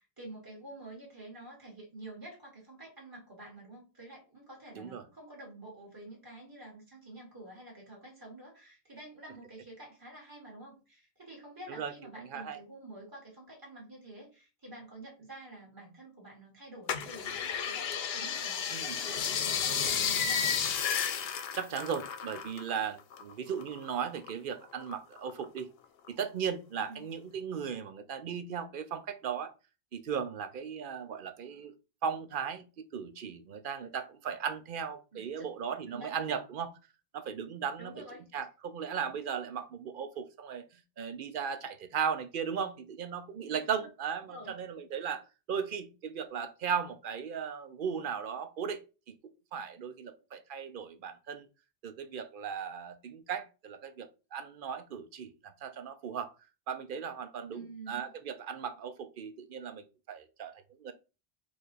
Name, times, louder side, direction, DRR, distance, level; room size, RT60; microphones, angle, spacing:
voice 1, 0.0-20.6 26.9-27.0 35.1-35.5 35.9-36.4 37.8-38.3 43.4-43.9 44.3-44.5 57.5-58.1, right 1 dB, 20° right, 1.8 m, -49 dB
voice 2, 11.7-12.6 18.7-19.0 21.5-25.7 26.1-29.5 29.9-31.7 32.0-36.7 37.1-37.9 38.3-40.6 41.0-49.1 49.5-51.5 51.8-56.3 56.7-60.9, right 7 dB, 60° right, 0.7 m, -37 dB
sound 1, 16.9-22.7 23.0-24.3 24.7-25.6 26.1-26.2, left 7 dB, 75° left, 0.8 m, -32 dB
4.7 x 2.5 x 4.0 m
omnidirectional pair, 1.0 m